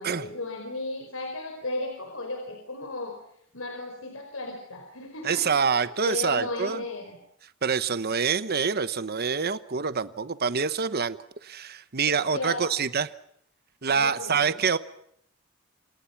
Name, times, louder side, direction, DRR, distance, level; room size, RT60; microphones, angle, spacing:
voice 1, 0.0-3.2 3.5-7.2 12.0-12.7 13.9-14.5, left 2 dB, 80° left, 4 dB, 4.9 m, -35 dB
voice 2, 5.2-6.8 7.6-13.1 13.8-14.8, right 5 dB, 50° right, 13 dB, 1.0 m, -26 dB
29.0 x 27.5 x 6.0 m, 0.72 s
head